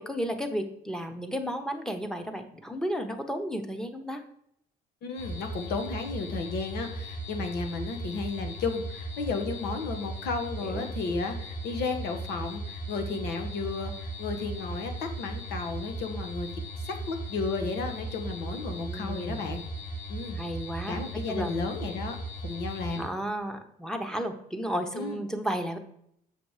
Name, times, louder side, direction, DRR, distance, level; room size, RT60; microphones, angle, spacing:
voice 1, 0.0-4.2 10.6-10.9 18.8-19.5 20.3-21.0 21.3-21.6 22.9-25.8, equal, 5° left, 6 dB, 1.1 m, -33 dB
voice 2, 5.0-16.5 16.8-19.6 20.1-20.4 20.9-22.2 22.4-23.1 24.9-25.2, left 4 dB, 75° left, 6 dB, 1.5 m, -33 dB
sound 1, 5.2-23.0, right 1 dB, 60° left, 3.7 m, -37 dB
7.8 x 6.0 x 5.0 m, 0.72 s
cardioid pair, 110°, 17 cm